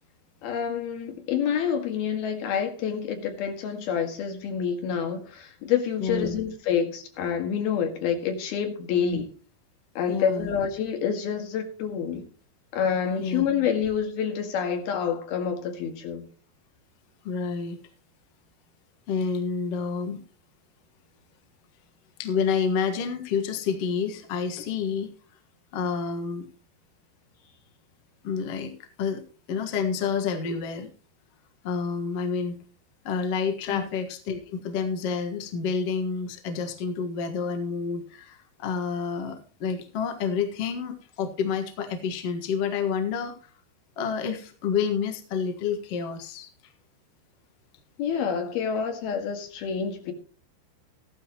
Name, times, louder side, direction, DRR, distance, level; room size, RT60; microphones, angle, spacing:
voice 1, 0.4-9.3 9.9-12.3 12.7-16.3 33.7-33.9 48.0-50.1, left 7 dB, 60° left, 5 dB, 3.3 m, -28 dB
voice 2, 6.0-6.4 9.1-9.2 10.1-10.5 13.2-13.4 17.2-17.8 19.1-20.2 22.2-25.1 25.7-26.5 28.2-28.7 29.0-29.2 29.5-30.9 31.6-32.6 33.0-43.4 44.0-46.5, left 6 dB, 85° left, 4 dB, 1.3 m, -29 dB
15.0 x 12.0 x 3.0 m, 0.37 s
omnidirectional pair, 5.6 m